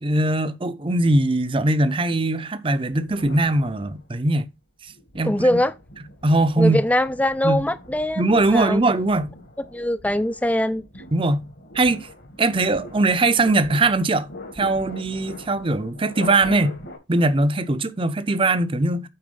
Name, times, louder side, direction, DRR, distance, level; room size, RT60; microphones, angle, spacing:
voice 1, 0.0-4.5 5.1-5.6 6.2-6.8 7.4-7.6 8.2-9.3 11.1-11.4 11.7-12.1 12.4-14.3 14.6-16.8 17.1-19.1, right 2 dB, 30° right, 0.6 m, -21 dB
sound 1, 2.9-4.3 4.9-17.0, left 1 dB, 60° left, 2.1 m, -42 dB
voice 2, 5.2-5.7 6.6-8.8 9.7-10.8, left 1 dB, 10° left, 0.3 m, -22 dB
8.8 x 4.2 x 5.2 m
head